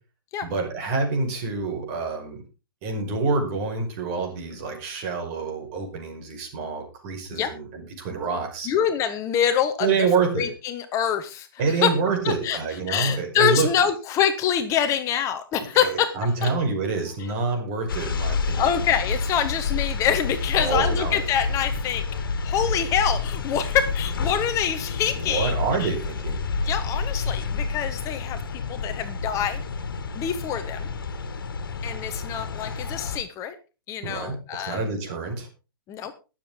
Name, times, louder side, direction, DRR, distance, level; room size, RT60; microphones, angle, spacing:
voice 1, 0.4-2.4 2.8-8.7 9.8-10.5 11.6-13.7 15.7-18.8 20.5-21.3 25.1-26.4 34.0-35.5, right 4 dB, 40° right, 2 dB, 5.3 m, -27 dB
voice 2, 8.6-9.9 10.4-11.5 11.8-11.9 12.2-12.6 12.9-16.1 16.4-16.5 18.6-22.0 22.4-25.9 26.6-29.6 30.1-30.9 31.8-33.6 33.9-34.8 35.9-36.1, left 9 dB, 25° left, 9 dB, 1.1 m, -25 dB
sound 1, 17.9-33.2, left 4 dB, 65° left, 1.9 m, -29 dB
22.0 x 7.5 x 3.8 m, 0.32 s
figure-of-eight pair, 115°, 12 cm